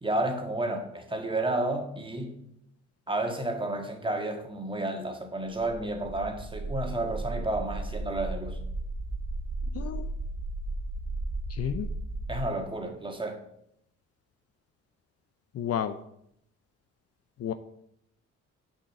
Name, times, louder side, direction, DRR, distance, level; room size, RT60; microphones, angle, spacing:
voice 1, 0.0-2.4 3.1-8.6 12.3-13.4, right 2 dB, 15° right, 1.6 m, -31 dB
sound 1, 5.5-12.4, right 2 dB, 75° right, 1.9 m, -35 dB
voice 2, 9.7-10.1 11.5-11.9 15.5-16.0 17.4-17.5, left 9 dB, 55° left, 0.6 m, -31 dB
7.2 x 5.4 x 6.6 m
cardioid pair, 90°, 30 cm